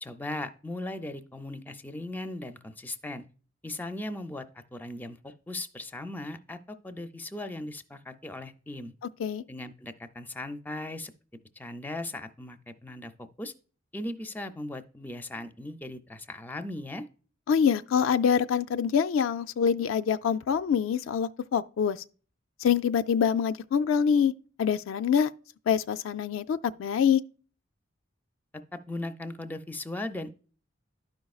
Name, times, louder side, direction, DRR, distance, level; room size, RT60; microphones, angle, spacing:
voice 1, 0.0-3.2 3.6-8.9 9.5-11.1 11.6-13.5 13.9-17.0 28.7-30.4, left 1 dB, 10° left, 0.4 m, -38 dB
voice 2, 17.5-22.0 22.6-24.3 24.6-25.3 25.7-27.2, left 7 dB, 90° left, 0.3 m, -25 dB
12.0 x 5.2 x 2.3 m
head